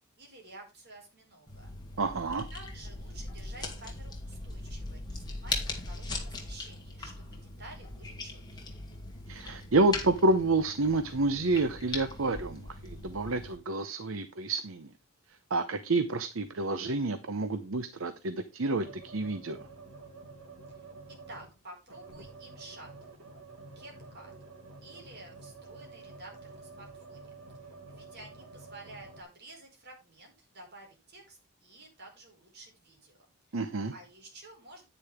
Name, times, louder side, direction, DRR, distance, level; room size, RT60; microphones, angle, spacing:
voice 1, 0.2-1.7 2.5-8.7 20.7-20.9 21.3-22.9 23.8-24.3 24.8-27.3 27.9-33.2 33.5-34.8, right 2 dB, 50° right, 1 dB, 5.2 m, -51 dB
sound 1, 1.5-13.6, left 3 dB, 20° left, 2.5 m, -40 dB
voice 2, 2.0-2.5 9.3-14.9 15.5-19.6 33.5-33.9, right 2 dB, 70° right, 11 dB, 0.8 m, -29 dB
sound 2, 18.8-21.6 21.9-29.2, right 3 dB, 85° right, 1.8 m, -49 dB
9.9 x 9.9 x 3.5 m, 0.26 s
head